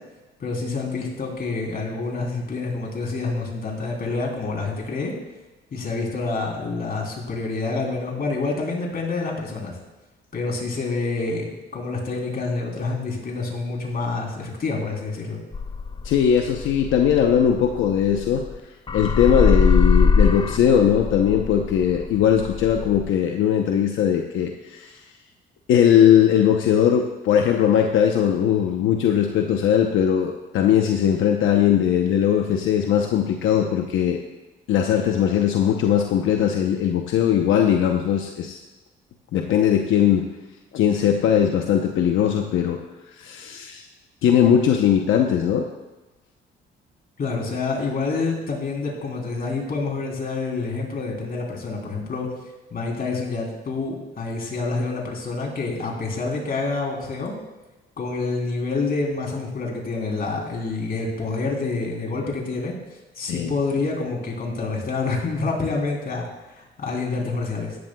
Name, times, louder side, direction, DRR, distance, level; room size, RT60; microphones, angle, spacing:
voice 1, 0.4-5.1 5.7-9.8 10.3-15.4 47.2-52.3 52.7-57.3 58.0-62.8 63.2-67.8, left 3 dB, 50° left, -1 dB, 3.5 m, -27 dB
sound 1, 15.5-18.6 18.9-23.1, left 4 dB, 25° left, 0.5 m, -22 dB
voice 2, 16.0-18.4 18.9-24.9 25.7-34.2 34.7-38.6 39.3-40.2 40.7-42.8 43.2-43.8 44.2-45.6 63.3-63.5, left 9 dB, 85° left, 2 dB, 0.9 m, -19 dB
15.5 x 11.5 x 2.3 m, 1.1 s
cardioid pair, 90°, 20 cm